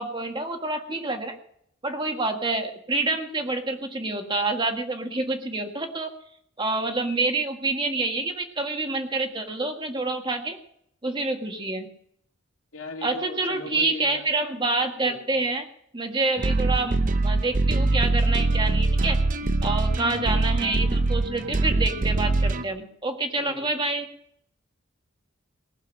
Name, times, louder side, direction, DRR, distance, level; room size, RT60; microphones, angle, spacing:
voice 1, 0.0-1.4 1.8-6.1 6.6-10.6 11.0-11.9 13.0-15.7 15.9-19.2 19.6-24.1, right 3 dB, 25° right, 4 dB, 1.7 m, -27 dB
voice 2, 12.7-14.3 15.0-15.5 23.4-23.7, left 2 dB, 90° left, 2 dB, 2.4 m, -38 dB
sound 1, 16.4-22.6, right 2 dB, 40° right, 0.7 m, -23 dB
19.0 x 7.2 x 8.8 m, 0.70 s
head